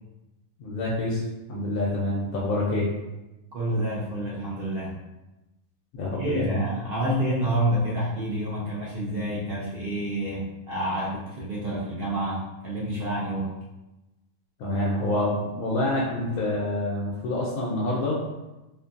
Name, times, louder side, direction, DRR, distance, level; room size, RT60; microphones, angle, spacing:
voice 1, 0.6-2.9 5.9-6.6 14.6-18.2, left 1 dB, 90° left, -5 dB, 1.0 m, -27 dB
voice 2, 3.5-5.0 6.2-13.5, right 1 dB, 60° right, -5 dB, 0.6 m, -28 dB
2.6 x 2.5 x 2.5 m, 1.0 s
omnidirectional pair, 1.5 m